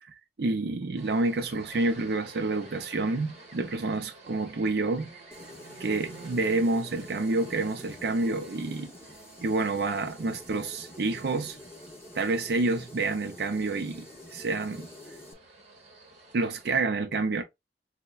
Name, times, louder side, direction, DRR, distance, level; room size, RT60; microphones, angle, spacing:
voice 1, 0.0-5.1 5.8-8.9 9.4-11.6 12.1-14.9 16.3-17.4, right 3 dB, 65° right, 0.5 m, -28 dB
sound 1, 1.0-16.8, right 3 dB, 40° right, 1.2 m, -51 dB
sound 2, 5.3-15.3, left 1 dB, 15° left, 0.8 m, -48 dB
5.4 x 2.1 x 2.3 m
head